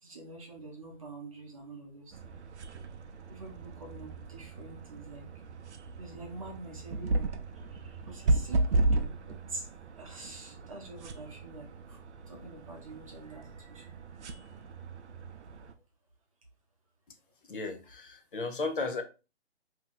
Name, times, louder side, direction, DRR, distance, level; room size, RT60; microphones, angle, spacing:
voice 1, 0.0-2.4 3.3-5.3 6.0-7.3 7.7-9.7 10.0-12.0 12.3-13.9, right 2 dB, 30° right, 0.8 m, -46 dB
sound 1, 2.1-15.7, right 2 dB, 80° right, 0.6 m, -35 dB
voice 2, 17.4-19.0, left 3 dB, 50° left, 0.7 m, -34 dB
2.8 x 2.3 x 3.8 m
hypercardioid pair, 175°, 34 cm